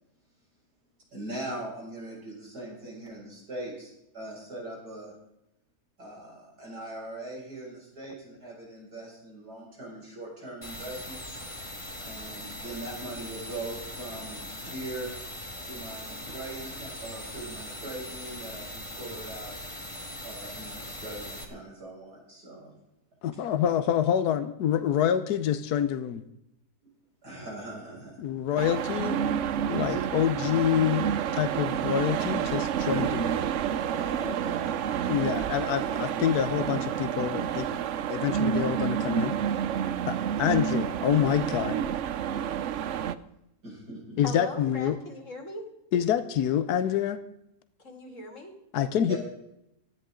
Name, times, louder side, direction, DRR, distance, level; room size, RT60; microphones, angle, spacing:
voice 1, 1.1-5.1 6.0-11.4 12.0-15.1 15.6-19.5 20.2-22.7 27.2-28.3 29.8-30.0 33.9-34.8 43.6-44.2 49.1-49.2, right 1 dB, 80° right, -4 dB, 7.1 m, -41 dB
sound 1, 10.6-21.5, left 1 dB, 20° left, 1.7 m, -40 dB
voice 2, 23.2-26.2 28.2-29.2 29.7-31.1 31.3-33.5 35.1-37.7 38.1-39.3 40.1-41.8 44.2-45.0 45.9-47.2 48.7-49.2, left 9 dB, 80° left, 11 dB, 1.3 m, -27 dB
sound 2, 28.6-43.2, right 9 dB, 60° right, 0.8 m, -29 dB
voice 3, 44.2-45.7 47.8-48.6, left 2 dB, 50° left, 2 dB, 2.9 m, -40 dB
19.0 x 13.5 x 3.8 m, 0.83 s
omnidirectional pair, 1.7 m